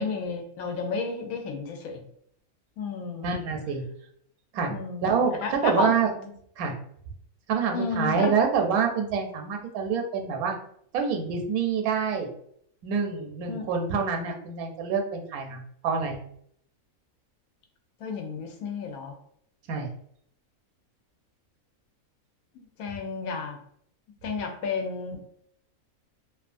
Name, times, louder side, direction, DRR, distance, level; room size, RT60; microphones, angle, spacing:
voice 1, 0.0-2.0 2.8-3.5 4.7-5.1 5.4-6.3 7.7-8.3 13.5-13.6 18.0-19.1 22.6-23.6 24.2-25.2, left 4 dB, 80° left, 3 dB, 1.0 m, -32 dB
voice 2, 3.2-3.8 4.5-4.7 5.0-6.1 6.6-6.7 7.5-10.6 10.9-12.3 12.8-16.2 19.7-19.9, right 6 dB, 85° right, 3 dB, 1.1 m, -26 dB
2.7 x 2.3 x 2.5 m, 0.68 s
omnidirectional pair, 1.5 m